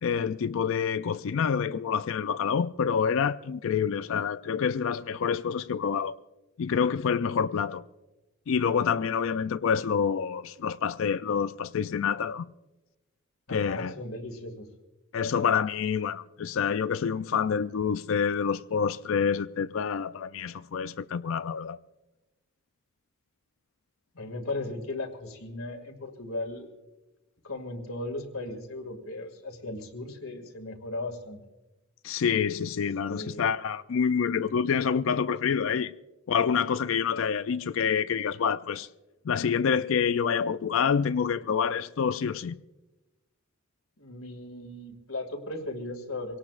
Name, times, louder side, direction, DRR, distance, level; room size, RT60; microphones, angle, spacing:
voice 1, 0.0-6.2 6.6-7.8 8.5-12.5 13.5-13.9 15.1-21.8 32.0-35.9 36.3-38.9 39.3-42.6, left 6 dB, 65° left, 0.4 m, -27 dB
voice 2, 13.5-14.7 24.1-26.7 27.4-31.4 33.1-33.5 44.0-46.4, left 2 dB, 85° left, 2.2 m, -37 dB
25.0 x 18.0 x 2.5 m
head